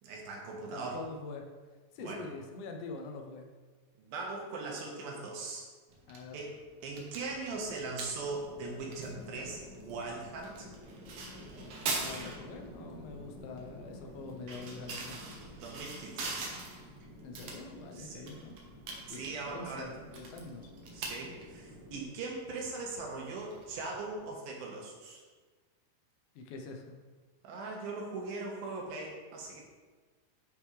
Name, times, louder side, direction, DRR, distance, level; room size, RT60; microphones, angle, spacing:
voice 1, 0.0-1.0 2.0-2.2 4.0-5.6 6.3-6.6 6.8-10.7 14.6-14.7 15.6-16.4 17.9-18.3 19.0-19.9 20.9-25.2 27.4-29.6, right 3 dB, 85° right, -2 dB, 3.1 m, -40 dB
voice 2, 0.7-1.5 1.9-3.5 6.1-6.4 11.8-15.2 17.2-18.6 19.1-20.7 26.4-26.9, left 3 dB, 85° left, 3 dB, 2.6 m, -45 dB
sound 1, 5.9-24.3, right 3 dB, 65° right, 1.8 m, -44 dB
sound 2, 7.1-22.0, left 1 dB, ahead, 1.2 m, -51 dB
10.0 x 5.1 x 3.3 m, 1.4 s
omnidirectional pair, 4.0 m